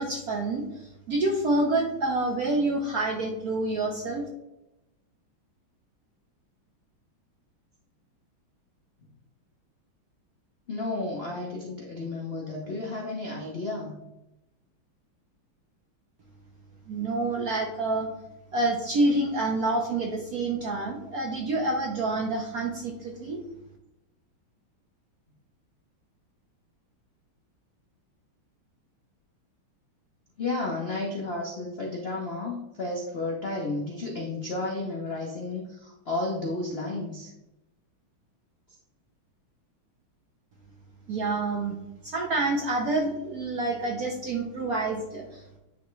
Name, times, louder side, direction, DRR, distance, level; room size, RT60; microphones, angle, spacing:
voice 1, 0.0-4.3 16.9-18.1 18.5-23.4 41.1-41.8 42.0-45.6, right 2 dB, 60° right, 1 dB, 1.0 m, -28 dB
voice 2, 10.7-14.0 30.4-37.3 38.7-38.8, left 2 dB, 45° left, -3 dB, 0.8 m, -32 dB
10.0 x 3.5 x 3.1 m, 0.92 s
omnidirectional pair, 2.3 m